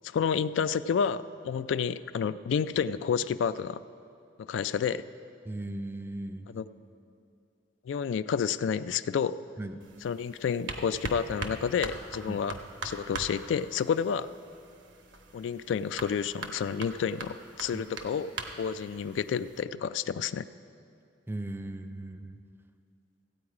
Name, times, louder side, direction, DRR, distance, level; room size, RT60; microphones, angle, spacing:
voice 1, 0.1-3.8 4.5-5.0 6.5-6.6 7.9-9.4 10.0-12.5 12.8-14.3 15.3-18.3 18.6-20.5, left 7 dB, 80° left, 14 dB, 0.3 m, -30 dB
voice 2, 5.4-6.5 9.6-9.8 12.3-12.4 17.7-17.8 21.3-22.4, right 1 dB, 10° right, 8 dB, 0.5 m, -37 dB
sound 1, 9.8-19.6, right 3 dB, 85° right, 1.0 m, -42 dB
15.0 x 8.6 x 4.8 m, 2.6 s
head